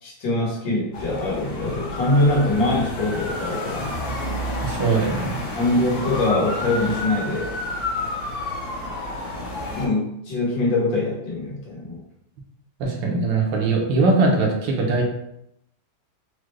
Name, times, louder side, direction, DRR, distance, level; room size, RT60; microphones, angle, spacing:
voice 1, 0.0-3.9 5.6-7.5 9.8-12.0, left 2 dB, 80° left, -4 dB, 1.9 m, -23 dB
sound 1, 0.9-9.9, left 2 dB, 65° left, 1.1 m, -30 dB
voice 2, 4.6-5.5 12.8-15.0, right 3 dB, 80° right, 0 dB, 1.6 m, -21 dB
4.9 x 2.2 x 3.2 m, 0.79 s
omnidirectional pair, 2.0 m